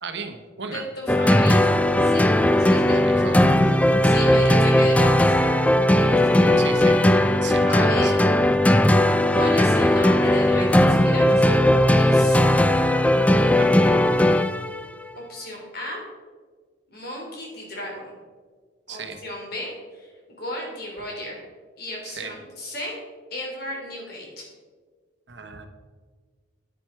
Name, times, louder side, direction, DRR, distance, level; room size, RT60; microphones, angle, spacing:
voice 1, 0.0-0.9 1.3-1.4 2.9-3.6 4.4-4.6 6.6-7.0 7.4-8.2 13.4-13.7 18.9-19.2 22.0-22.3 25.3-25.7, right 5 dB, 60° right, 6 dB, 1.0 m, -36 dB
voice 2, 0.7-1.7 2.0-2.3 2.5-3.0 4.0-5.6 5.9-6.6 7.6-8.4 9.3-12.4 15.1-16.0 16.9-18.1 18.9-21.4 21.8-22.9 23.3-24.4, left 1 dB, 50° left, -2 dB, 3.4 m, -34 dB
sound 1, 1.1-14.8, left 1 dB, 5° left, 0.3 m, -18 dB
9.8 x 9.3 x 4.5 m, 1.5 s
head